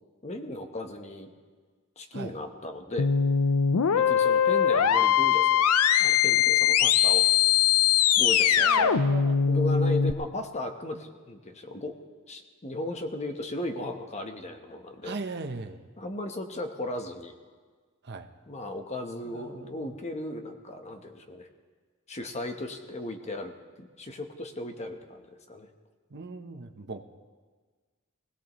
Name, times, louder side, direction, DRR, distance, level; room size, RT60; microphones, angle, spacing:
voice 1, 0.2-1.3 2.0-3.1 3.9-5.6 6.0-7.3 8.2-9.0 9.4-11.9 12.3-15.1 16.0-17.4 18.5-21.5 22.1-25.7, left 1 dB, 30° left, 5 dB, 1.0 m, -36 dB
sound 1, 3.0-10.1, left 8 dB, 90° left, 0.5 m, -22 dB
voice 2, 8.6-9.4 15.0-15.8 18.0-18.3 19.3-19.9 20.9-21.0 26.1-27.0, right 4 dB, 50° right, 6 dB, 0.8 m, -38 dB
20.0 x 17.0 x 3.1 m, 1.5 s
head